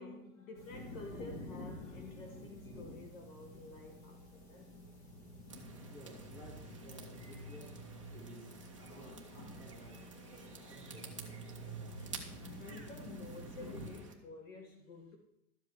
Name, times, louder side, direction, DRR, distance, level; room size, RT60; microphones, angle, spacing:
voice 1, 0.0-4.8 10.5-11.0 11.8-15.2, left 3 dB, 55° left, 1.4 m, -51 dB
sound 1, 0.6-13.9, equal, 35° left, 2.1 m, -49 dB
sound 2, 5.5-14.1, right 4 dB, 20° right, 0.4 m, -52 dB
voice 2, 5.9-6.5 6.8-7.7 8.1-10.0 10.6-11.3, right 2 dB, 15° left, 2.6 m, -55 dB
12.5 x 7.6 x 4.6 m
supercardioid pair, 175°, 48 cm